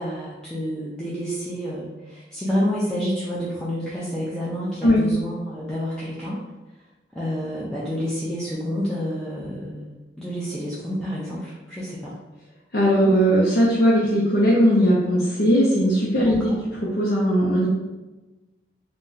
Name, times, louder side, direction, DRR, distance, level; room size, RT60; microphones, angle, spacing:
voice 1, 0.0-6.4 7.1-12.2 16.1-16.6, equal, 5° left, -8 dB, 0.4 m, -29 dB
voice 2, 12.7-16.5 16.8-17.7, equal, 75° left, -7 dB, 0.7 m, -19 dB
2.6 x 2.2 x 3.8 m, 1.1 s
head